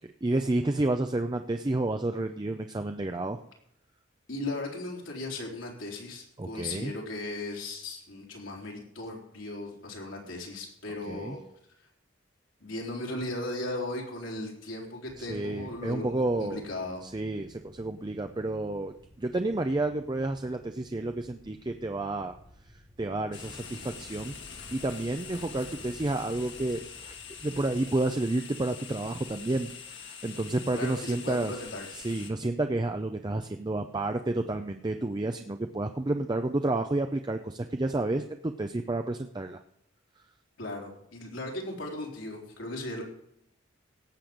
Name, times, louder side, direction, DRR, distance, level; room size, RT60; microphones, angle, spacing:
voice 1, 0.2-3.4 6.4-6.9 11.1-11.4 15.2-16.6 17.0-22.4 23.0-24.3 24.7-27.1 27.4-31.5 32.0-39.6, right 2 dB, 20° right, 6 dB, 0.5 m, -30 dB
voice 2, 4.3-11.4 12.6-17.1 30.7-31.9 40.6-43.0, left 2 dB, 80° left, -1 dB, 3.8 m, -37 dB
sound 1, 15.1-27.9, equal, ahead, 1.0 m, -58 dB
sound 2, 23.3-32.3, left 6 dB, 60° left, 1.9 m, -44 dB
17.5 x 7.7 x 5.1 m, 0.75 s
head